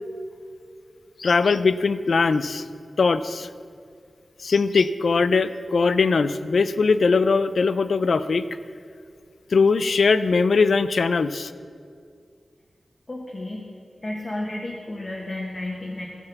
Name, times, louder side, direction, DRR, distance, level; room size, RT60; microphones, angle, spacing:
voice 1, 1.2-2.6 3.0-3.5 4.4-8.4 9.5-11.5, left 4 dB, 70° left, 13 dB, 0.4 m, -20 dB
voice 2, 13.1-13.6 14.0-16.1, left 1 dB, 35° left, -2 dB, 1.4 m, -32 dB
14.5 x 5.7 x 7.2 m, 2.2 s
wide cardioid pair, 110°, 0 cm